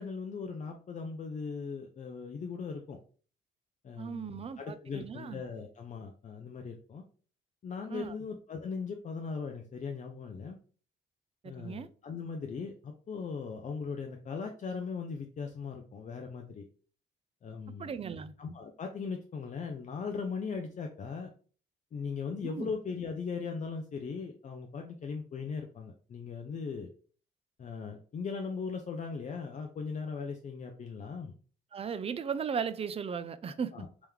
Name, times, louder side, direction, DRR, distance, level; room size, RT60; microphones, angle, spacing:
voice 1, 0.0-3.0 3.8-7.0 7.6-10.6 11.4-16.7 17.4-17.9 18.4-21.3 21.9-26.9 27.6-31.3 33.7-34.1, left 5 dB, 40° left, 0.5 m, -39 dB
voice 2, 4.0-5.4 7.9-8.1 11.4-11.9 17.8-18.3 22.4-22.7 31.7-33.7, right 6 dB, 30° right, 0.4 m, -36 dB
3.5 x 3.0 x 3.5 m
cardioid pair, 90°, 20 cm